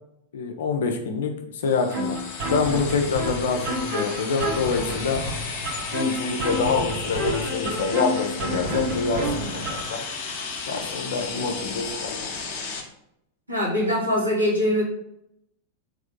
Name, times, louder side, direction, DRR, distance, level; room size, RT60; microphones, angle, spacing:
voice 1, 0.3-1.3 1.6-2.2 2.5-5.2 5.9-10.0 10.7-12.3, left 4 dB, 60° left, 4 dB, 0.6 m, -26 dB
sound 1, 1.6-12.8, left 5 dB, 40° left, 1.0 m, -34 dB
sound 2, 1.9-9.9, equal, 35° right, 1.5 m, -30 dB
voice 2, 13.5-14.8, left 1 dB, 85° right, -7 dB, 1.5 m, -22 dB
3.6 x 3.5 x 3.6 m, 0.77 s
figure-of-eight pair, 90°, 0 cm